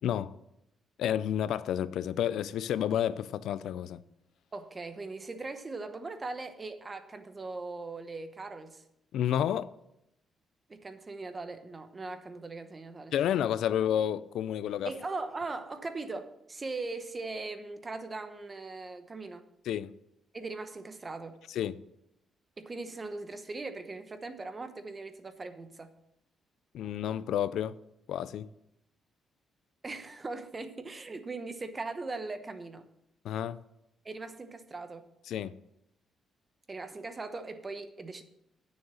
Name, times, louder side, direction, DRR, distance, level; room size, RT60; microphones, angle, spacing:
voice 1, 0.0-0.3 1.0-4.0 9.1-9.7 13.1-14.9 19.7-19.9 21.5-21.8 26.7-27.7 28.1-28.5 33.2-33.6 35.3-35.5, left 10 dB, 80° left, 0.4 m, -30 dB
voice 2, 4.5-8.8 10.7-13.1 14.8-19.4 20.3-21.4 22.6-25.9 29.8-32.8 34.0-35.1 36.7-38.2, right 3 dB, 25° right, 0.9 m, -40 dB
9.6 x 6.6 x 6.3 m
cardioid pair, 125°, 0 cm